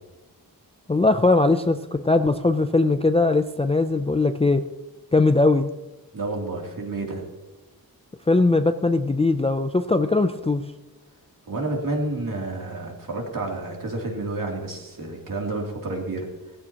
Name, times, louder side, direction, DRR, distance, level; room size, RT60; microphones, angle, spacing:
voice 1, 0.9-4.6 5.1-5.7 8.3-10.6, left 2 dB, 15° left, 8 dB, 0.4 m, -20 dB
voice 2, 6.1-7.2 11.5-16.3, right 2 dB, 60° right, 0 dB, 2.9 m, -30 dB
17.5 x 15.0 x 2.9 m, 1.1 s
wide cardioid pair, 155°, 38 cm